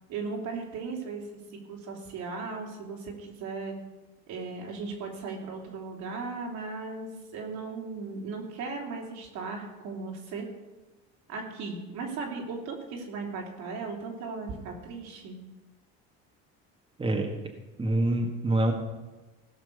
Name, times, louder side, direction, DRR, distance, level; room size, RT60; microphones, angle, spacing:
voice 1, 0.1-1.2 1.5-3.7 4.3-10.5 11.3-15.4, right 4 dB, 70° right, 0 dB, 3.2 m, -37 dB
voice 2, 17.8-18.7, right 1 dB, 15° right, 1 dB, 1.7 m, -25 dB
16.5 x 6.1 x 6.7 m, 1.2 s
cardioid pair, 110°, 30 cm